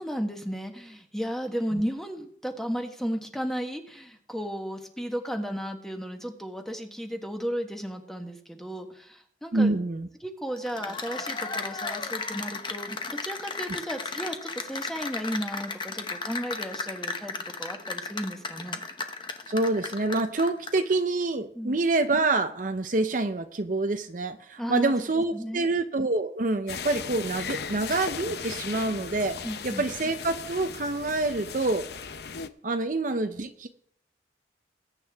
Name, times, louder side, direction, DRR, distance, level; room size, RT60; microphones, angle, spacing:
voice 1, 0.0-9.7 10.2-18.8 21.5-21.8 24.6-24.9 25.3-25.7 29.4-29.9, equal, ahead, 4 dB, 1.3 m, -34 dB
voice 2, 9.5-10.1 19.5-29.4 29.6-31.9 32.6-33.7, right 2 dB, 45° right, 8 dB, 0.7 m, -27 dB
Cheering / Applause, 10.6-20.9, left 4 dB, 25° left, 0.9 m, -35 dB
sound 1, 26.7-32.5, left 6 dB, 60° left, 0.7 m, -37 dB
20.5 x 9.1 x 3.5 m, 0.65 s
head